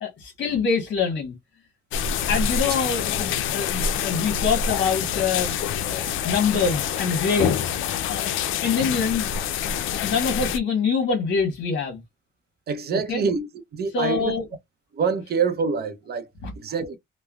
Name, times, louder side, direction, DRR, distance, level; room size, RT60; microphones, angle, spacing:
voice 1, 0.0-1.3 2.3-5.6 5.9-7.7 8.1-8.3 8.6-9.3 9.6-9.7 10.0-12.0 12.9-13.2 13.9-14.4 16.4-16.5, left 5 dB, 65° left, 1.0 m, -25 dB
sound 1, 1.9-10.6, left 8 dB, 80° left, 0.4 m, -26 dB
voice 2, 12.7-13.5 13.7-14.3 14.9-16.3 16.6-16.9, right 5 dB, 55° right, 0.6 m, -25 dB
3.1 x 2.1 x 2.3 m
cardioid pair, 90°, 20 cm